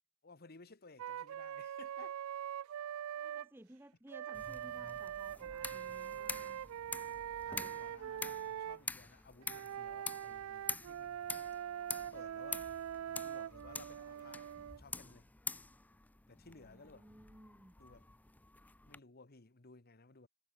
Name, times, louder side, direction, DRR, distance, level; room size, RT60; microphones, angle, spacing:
voice 1, 0.2-2.2 2.9-3.1 7.5-11.3 12.1-12.7 13.0-15.3 16.3-17.1 17.8-18.1 18.9-20.3, left 3 dB, 45° left, 1.4 m, -58 dB
Wind instrument woodwind instrument, 1.0-3.5 4.1-8.8 9.4-14.8, right 10 dB, 75° right, 0.3 m, -43 dB
voice 2, 3.2-6.6 7.9-8.5 16.5-17.7, right 1 dB, 10° right, 0.8 m, -58 dB
sound 1, 4.3-19.0, left 3 dB, 5° left, 0.4 m, -47 dB
head